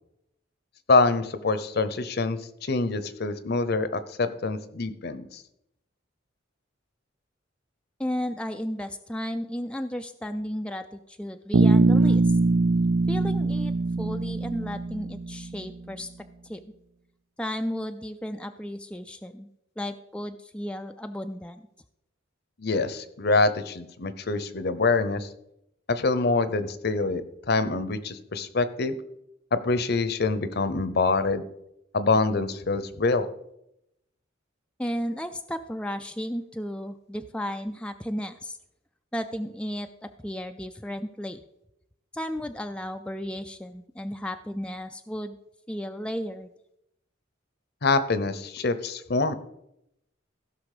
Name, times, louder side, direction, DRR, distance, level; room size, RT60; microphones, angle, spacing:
voice 1, 0.9-5.4 22.6-25.3 25.9-27.2 27.5-28.9 29.5-31.4 31.9-33.3 47.8-49.3, left 3 dB, 55° left, 12 dB, 0.8 m, -25 dB
voice 2, 8.0-12.4 13.1-13.7 14.0-16.1 16.4-16.6 17.4-19.5 19.8-21.6 34.8-38.6 39.1-41.4 42.1-45.4 45.7-46.5, equal, 5° left, 6 dB, 0.3 m, -34 dB
Bass guitar, 11.5-15.6, right 3 dB, 75° right, 0.5 m, -22 dB
15.5 x 6.0 x 5.0 m, 0.81 s
head